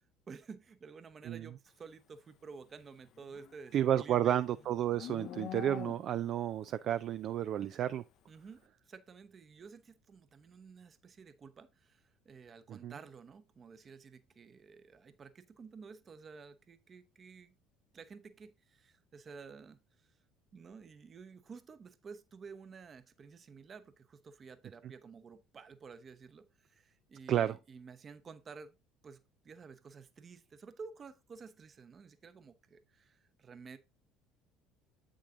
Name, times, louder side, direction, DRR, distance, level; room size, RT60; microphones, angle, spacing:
voice 1, 0.3-4.4 8.3-17.5 17.9-20.1 20.5-28.8 29.0-33.8, right 5 dB, 35° right, 0.9 m, -52 dB
Livestock farm animals working animals, 3.1-6.4, left 11 dB, 55° left, 0.7 m, -46 dB
voice 2, 3.7-8.0 12.7-12.9 27.3-27.6, right 11 dB, 50° right, 0.3 m, -31 dB
8.5 x 6.2 x 2.5 m
figure-of-eight pair, 60°, 0 cm